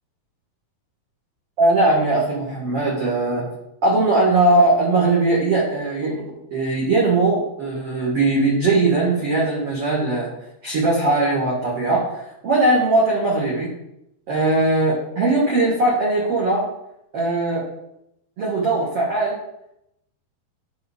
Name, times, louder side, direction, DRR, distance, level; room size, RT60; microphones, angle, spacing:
voice 1, 1.6-3.4 3.8-6.2 6.5-10.3 10.6-13.7 14.3-16.6 17.1-17.7 18.4-19.4, right 2 dB, 55° right, -6 dB, 1.8 m, -19 dB
10.5 x 4.9 x 3.6 m, 0.83 s
omnidirectional pair, 4.5 m